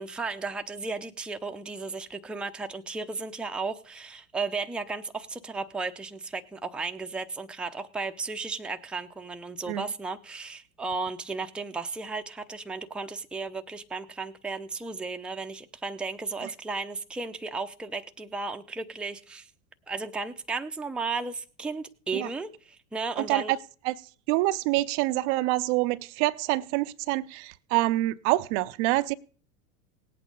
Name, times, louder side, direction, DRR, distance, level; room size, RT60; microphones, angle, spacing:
voice 1, 0.0-19.5 19.9-23.5, right 4 dB, ahead, 0.6 m, -34 dB
voice 2, 23.2-23.6 23.8-23.9 24.3-29.1, right 18 dB, 45° right, 0.6 m, -26 dB
18.0 x 8.6 x 5.3 m
hypercardioid pair, 105°, 48 cm